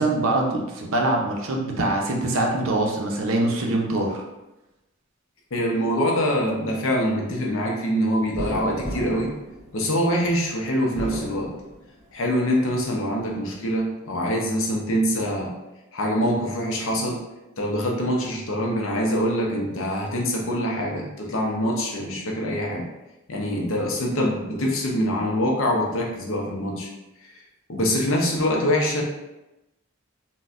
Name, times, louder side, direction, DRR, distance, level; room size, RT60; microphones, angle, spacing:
voice 1, 0.0-4.2, right 2 dB, 70° right, 0 dB, 0.6 m, -23 dB
voice 2, 5.5-9.3 9.7-11.5 12.1-15.5 15.9-17.2 17.6-22.9 23.3-26.9 27.7-29.0, equal, 65° left, -1 dB, 0.6 m, -24 dB
sound 1, 8.3-10.3 10.8-12.1 12.6-13.5, equal, ahead, 1.0 m, -35 dB
4.0 x 2.2 x 2.4 m, 0.97 s
head